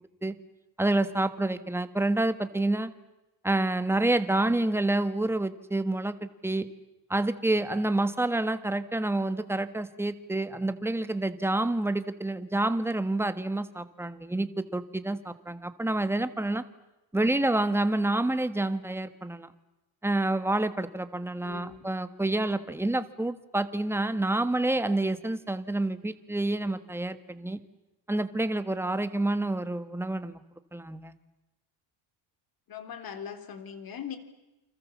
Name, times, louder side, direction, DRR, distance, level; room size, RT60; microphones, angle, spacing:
voice 1, 0.8-2.9 3.4-6.7 7.1-16.6 17.1-19.5 20.0-27.6 28.1-30.4 30.7-31.1, right 2 dB, 5° right, 11 dB, 1.4 m, -28 dB
voice 2, 21.4-21.9 32.7-34.2, left 8 dB, 45° left, 8 dB, 3.6 m, -40 dB
29.0 x 26.5 x 7.3 m, 1.0 s
cardioid pair, 130°, 48 cm